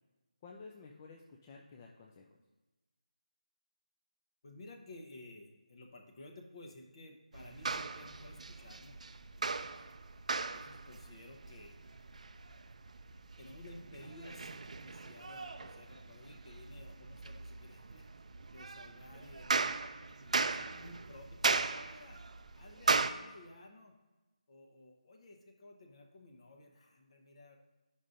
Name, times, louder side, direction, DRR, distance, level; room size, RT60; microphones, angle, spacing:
voice 1, 0.4-2.4 16.5-16.6, left 4 dB, 20° left, 0 dB, 0.4 m, -53 dB
voice 2, 4.4-9.0 9.3-9.8 10.4-11.8 13.4-19.8 20.2-22.2 22.5-23.9 24.5-27.6, left 2 dB, 45° left, 2 dB, 0.9 m, -54 dB
sound 1, 7.3-23.1, right 4 dB, 60° right, 0.3 m, -38 dB
9.5 x 5.4 x 2.5 m, 1.2 s
figure-of-eight pair, 160°, 4 cm